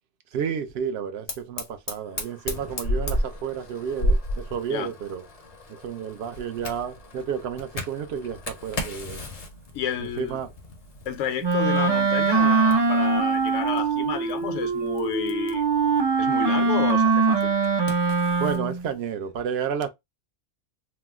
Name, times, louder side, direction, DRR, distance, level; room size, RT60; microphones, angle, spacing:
voice 1, 0.3-5.2 5.7-9.2 10.0-10.5 17.9-18.0 18.4-19.9, right 7 dB, 60° right, 0.8 m, -31 dB
Fire, 1.3-18.6, equal, 40° left, 0.6 m, -34 dB
voice 2, 9.7-10.4 11.1-15.7 16.2-17.5, left 9 dB, 75° left, 1.0 m, -31 dB
Wind instrument woodwind instrument, 11.4-18.8, right 4 dB, 35° right, 0.4 m, -22 dB
3.0 x 2.0 x 3.4 m
omnidirectional pair, 1.3 m